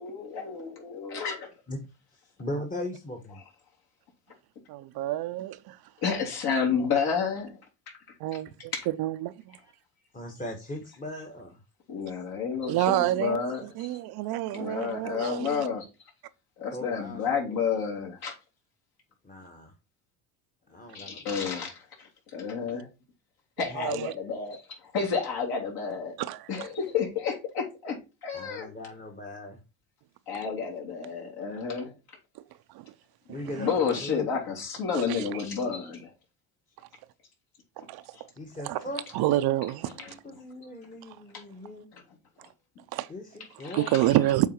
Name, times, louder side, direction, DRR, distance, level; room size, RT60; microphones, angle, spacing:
voice 1, 0.0-1.5 6.0-7.6 7.9-8.0 8.7-8.9 11.9-14.0 14.5-15.9 16.6-18.3 20.9-22.9 23.6-26.1 26.5-28.7 30.3-31.9 33.6-36.1 38.1-38.2 40.0-40.1 41.3-41.4 41.9-42.0 43.6-43.9, left 6 dB, 60° left, 3.3 m, -30 dB
voice 2, 2.1-3.4 10.1-11.6 16.7-17.6 19.2-19.7 20.7-21.6 22.6-22.8 23.7-23.9 28.3-29.6 33.3-34.2 38.3-39.4 39.9-41.9 43.1-44.2, left 1 dB, 20° left, 1.3 m, -39 dB
voice 3, 4.7-5.8 8.2-9.6 12.7-15.7 23.7-24.1 26.2-26.7 32.3-32.4 32.7-32.9 33.3-33.7 34.9-35.4 37.8-38.2 38.6-38.8 39.1-39.9 41.0-41.2 42.4-42.5 42.9-43.1 43.7-44.5, right 15 dB, 60° right, 0.7 m, -29 dB
7.2 x 4.2 x 4.4 m
supercardioid pair, 95°, 42 cm